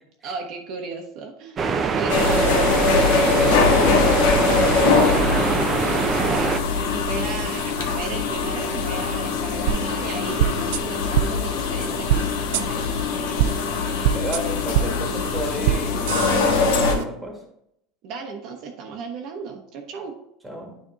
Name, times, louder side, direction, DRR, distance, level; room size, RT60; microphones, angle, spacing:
voice 1, 0.2-1.7 1.9-2.7 6.1-13.7 18.0-20.1, right 4 dB, 50° right, 2 dB, 1.0 m, -35 dB
sound 1, 1.6-6.6, right 5 dB, 25° right, 0.5 m, -23 dB
voice 2, 1.8-2.3 2.9-5.8 14.1-17.4 20.4-20.8, right 1 dB, 10° right, 1 dB, 1.6 m, -32 dB
sound 2, 2.1-16.9, left 5 dB, 90° left, 1.2 m, -22 dB
sound 3, 9.7-9.8 10.4-10.8 11.1-11.3 12.1-12.2 12.5-12.6 13.4-13.5 14.0-14.4 14.7-14.9 15.6-15.8 16.1-17.0, right 12 dB, 80° right, 0.4 m, -21 dB
9.4 x 3.4 x 3.9 m, 0.76 s
supercardioid pair, 145°, 0 cm